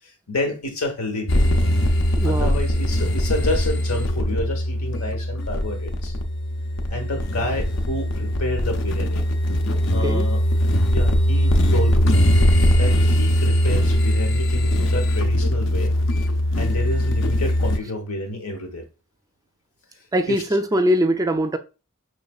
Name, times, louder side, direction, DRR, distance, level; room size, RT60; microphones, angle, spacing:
voice 1, 0.3-1.5 2.2-6.1 6.9-9.2 9.9-10.4 10.9-12.3 12.7-15.9 16.6-18.9 20.3-20.4, left 1 dB, 90° left, 1.0 m, -29 dB
sound 1, 1.3-17.8, equal, 60° left, 0.6 m, -20 dB
voice 2, 2.2-2.6 10.0-10.3 12.6-12.7 20.1-21.6, equal, 15° right, 0.3 m, -22 dB
5.3 x 3.2 x 2.2 m
head